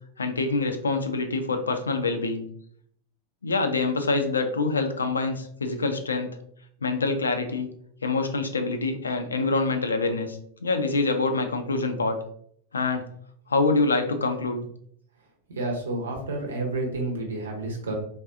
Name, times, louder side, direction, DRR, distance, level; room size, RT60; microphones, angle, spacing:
voice 1, 0.2-2.5 3.4-6.3 6.8-7.7 8.0-12.2 12.7-13.0 13.5-14.7, left 3 dB, 75° left, 7 dB, 0.4 m, -25 dB
voice 2, 15.6-18.0, right 2 dB, 70° right, 1 dB, 0.8 m, -30 dB
3.5 x 2.3 x 2.4 m, 0.65 s
figure-of-eight pair, 90°, 0 cm